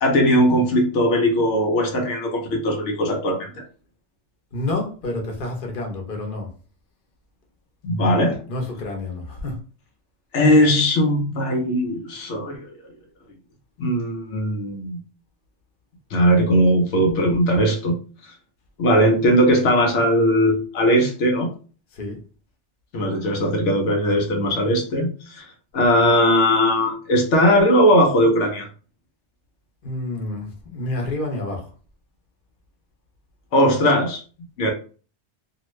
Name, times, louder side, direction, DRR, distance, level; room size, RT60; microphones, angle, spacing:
voice 1, 0.0-3.6 7.8-8.4 10.3-12.7 13.8-15.0 16.1-18.0 18.8-21.5 22.9-25.5 25.7-28.7 33.5-34.2 34.6-34.7, equal, 90° left, 1.0 m, -19 dB
voice 2, 4.5-6.5 8.5-9.6 21.9-22.2 29.8-31.7, left 2 dB, 50° left, 1.0 m, -29 dB
2.8 x 2.5 x 3.1 m
omnidirectional pair, 1.2 m